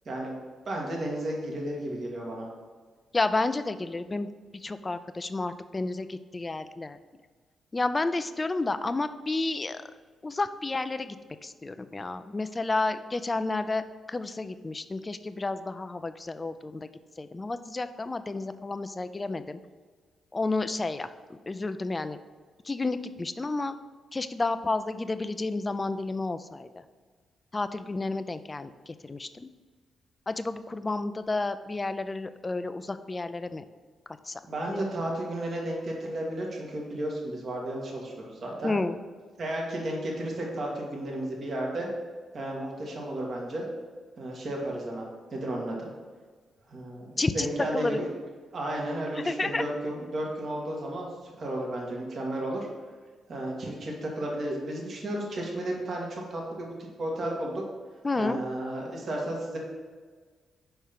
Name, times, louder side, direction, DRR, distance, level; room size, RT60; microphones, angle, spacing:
voice 1, 0.0-0.4 0.7-2.5 34.5-38.7 39.4-41.9 42.3-43.6 44.2-45.9 46.7-48.1 48.5-52.7 53.3-57.6 58.1-59.6, right 1 dB, 50° right, -2 dB, 1.7 m, -33 dB
voice 2, 3.1-4.3 4.6-7.0 7.7-9.8 10.2-11.2 11.4-13.8 14.1-16.9 17.2-19.6 20.3-22.2 22.7-23.8 24.1-26.7 27.5-29.5 30.3-33.6 34.3-34.4 34.7-34.8 38.6-39.0 47.2-47.5 47.7-48.0 49.1-49.6 58.0-58.4, left 3 dB, 30° left, 12 dB, 0.4 m, -31 dB
5.5 x 4.6 x 5.7 m, 1.5 s
hypercardioid pair, 40°, 0 cm